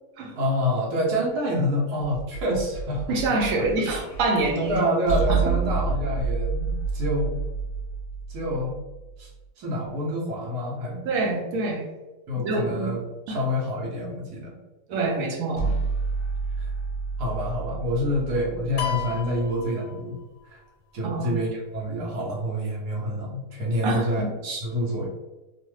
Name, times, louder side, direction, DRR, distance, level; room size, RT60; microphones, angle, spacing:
voice 1, 0.4-3.0 3.8-3.9 4.7-7.4 8.3-8.7 9.2-9.3 9.6-11.0 12.3-13.0 13.3-14.6 16.6-16.7 17.2-20.1 20.5-20.6 20.9-25.1, equal, 90° right, -4 dB, 1.3 m, -27 dB
sound 1, 2.0-9.3 15.6-19.7, right 4 dB, 60° left, 0.8 m, -30 dB
voice 2, 3.1-4.8 5.3-5.6 11.0-11.8 12.4-13.0 13.3-13.4 14.9-15.7 21.0-21.3 23.8-24.3, right 3 dB, 65° right, 0 dB, 1.0 m, -26 dB
sound 2, 18.8-20.5, left 9 dB, 90° left, 1.1 m, -33 dB
3.0 x 2.1 x 3.1 m, 1.1 s
omnidirectional pair, 1.7 m